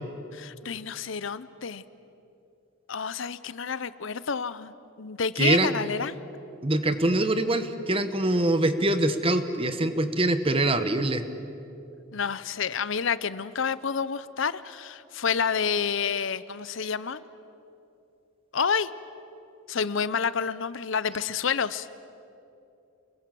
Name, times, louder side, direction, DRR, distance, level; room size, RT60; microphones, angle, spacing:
voice 1, 0.3-1.8 2.9-4.7 5.0-6.1 12.1-17.2 18.5-18.9 19.7-21.9, left 6 dB, 65° left, 16 dB, 0.7 m, -29 dB
voice 2, 5.4-5.7 6.6-11.2, right 2 dB, 25° right, 10 dB, 1.2 m, -24 dB
28.5 x 21.5 x 7.7 m, 2.7 s
head